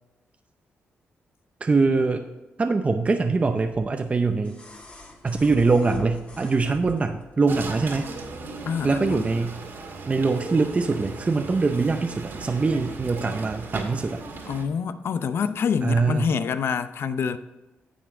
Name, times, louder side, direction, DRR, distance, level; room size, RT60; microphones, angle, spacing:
voice 1, 1.6-2.3 2.6-4.6 5.2-8.1 8.8-9.6 10.1-14.2 15.8-16.3, right 4 dB, 30° right, 0.6 m, -23 dB
sound 1, 3.6-7.4 8.6-8.7, left 4 dB, 30° left, 1.8 m, -41 dB
sound 2, 7.5-14.6, right 3 dB, 65° right, 1.9 m, -37 dB
voice 2, 8.7-9.3 14.5-17.4, left 6 dB, 65° left, 0.6 m, -26 dB
10.0 x 7.1 x 3.7 m
cardioid pair, 80°, 4 cm